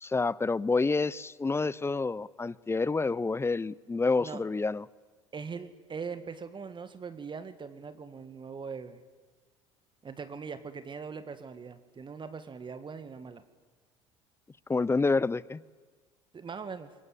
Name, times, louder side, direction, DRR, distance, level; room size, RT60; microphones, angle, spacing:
voice 1, 0.0-4.9 14.7-15.6, left 3 dB, 15° left, 0.7 m, -28 dB
voice 2, 5.3-9.0 10.0-13.4 16.3-16.9, right 5 dB, 30° right, 2.0 m, -41 dB
28.5 x 23.0 x 8.6 m
figure-of-eight pair, 65°, 16 cm